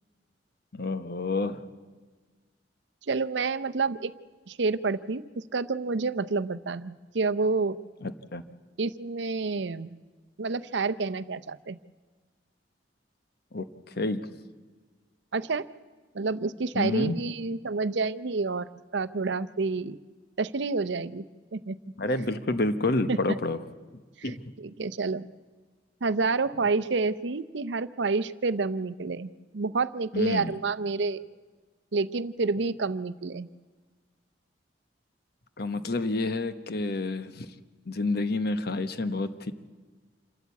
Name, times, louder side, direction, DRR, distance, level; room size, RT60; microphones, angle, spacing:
voice 1, 0.7-1.6 8.0-8.4 13.5-14.2 16.7-17.2 22.0-23.6 24.2-24.4 30.1-30.6 35.6-37.5 37.9-39.5, left 2 dB, 55° left, 11 dB, 1.0 m, -29 dB
voice 2, 3.1-4.1 4.5-7.8 8.8-10.0 10.4-11.8 15.3-15.7 16.1-20.0 20.4-21.2 21.5-21.8 23.1-23.2 24.2-25.3 26.0-31.2 31.9-33.5, right 4 dB, 70° right, 13 dB, 0.7 m, -29 dB
27.5 x 13.0 x 8.3 m, 1.4 s
head